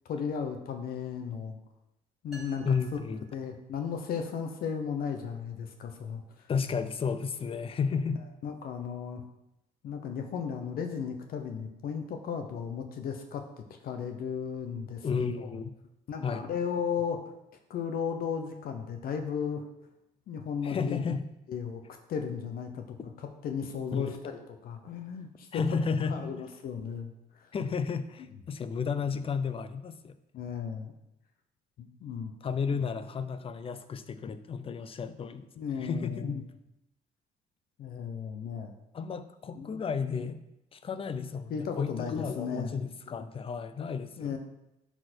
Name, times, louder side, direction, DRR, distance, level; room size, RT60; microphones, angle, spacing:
voice 1, 0.0-1.6 2.2-2.6 2.9-3.0 3.3-6.2 8.4-9.2 9.8-15.5 16.1-17.2 17.7-19.6 20.3-21.0 21.5-21.8 22.1-23.1 23.4-25.6 26.1-27.1 30.3-30.9 31.8-32.3 35.6-36.3 37.8-38.7 39.5-39.8 41.5-42.8 44.2-44.4, left 7 dB, 60° left, 6 dB, 0.9 m, -35 dB
sound 1, 2.3-4.1, right 2 dB, ahead, 2.9 m, -54 dB
voice 2, 2.6-3.2 6.5-8.2 15.0-15.8 16.2-16.5 20.6-21.3 23.9-24.1 25.5-26.4 27.5-30.2 32.4-35.5 35.8-36.6 38.9-40.4 40.7-44.4, left 5 dB, 35° left, 12 dB, 0.6 m, -32 dB
11.0 x 4.5 x 4.4 m, 0.88 s
cardioid pair, 110°, 17 cm